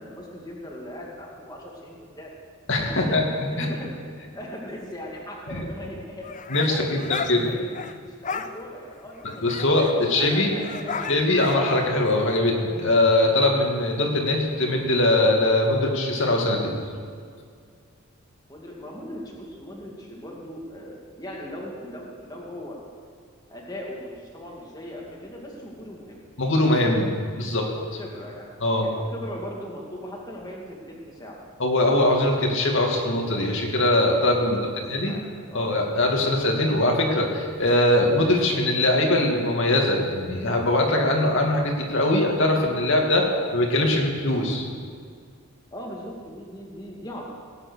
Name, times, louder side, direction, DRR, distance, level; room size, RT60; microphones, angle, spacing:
voice 1, 0.0-2.3 2.9-3.2 3.5-3.9 4.2-6.3 6.6-7.7 8.0-9.8 10.1-11.2 18.5-22.8 23.5-26.2 28.0-28.5 28.8-31.4 34.4-35.7 45.7-47.3, equal, 15° left, -2 dB, 2.2 m, -39 dB
voice 2, 2.7-3.3 3.6-3.7 5.5-5.6 6.5-7.5 9.2-10.5 11.1-16.8 26.4-27.1 27.4-28.0 28.6-28.9 31.6-34.6 34.9-35.2 35.5-43.2 43.5-44.7, left 1 dB, 55° left, 1 dB, 2.4 m, -22 dB
sound 1, 6.2-7.9 8.2-8.5 8.9-9.0 9.2-12.4, left 5 dB, 35° left, 0.5 m, -35 dB
18.5 x 9.8 x 6.4 m, 2.2 s
head